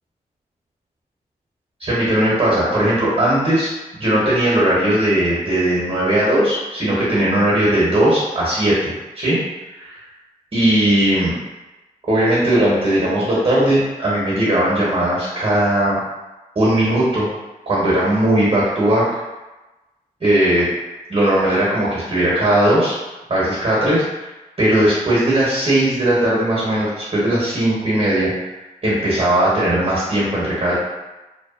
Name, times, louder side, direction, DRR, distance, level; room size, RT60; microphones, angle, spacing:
voice 1, 1.8-3.7 4.0-9.4 9.7-10.0 10.5-11.3 12.1-16.0 16.5-17.3 17.7-19.1 20.2-20.6 21.1-22.9 23.3-24.3 24.6-28.3 28.8-30.8, right 1 dB, 35° right, -7 dB, 1.0 m, -18 dB
2.8 x 2.2 x 2.4 m, 1.1 s
cardioid pair, 50°, 17 cm